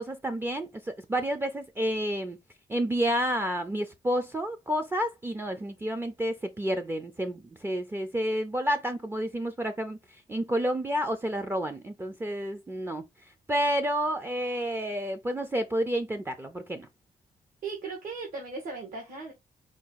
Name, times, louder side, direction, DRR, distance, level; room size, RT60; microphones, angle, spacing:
voice 1, 0.0-2.4 2.7-10.0 10.3-13.0 13.5-16.9, equal, 15° right, 0.4 m, -30 dB
voice 2, 17.6-19.3, right 4 dB, 70° right, 1.5 m, -37 dB
4.6 x 2.3 x 3.9 m
cardioid pair, 130°, 15 cm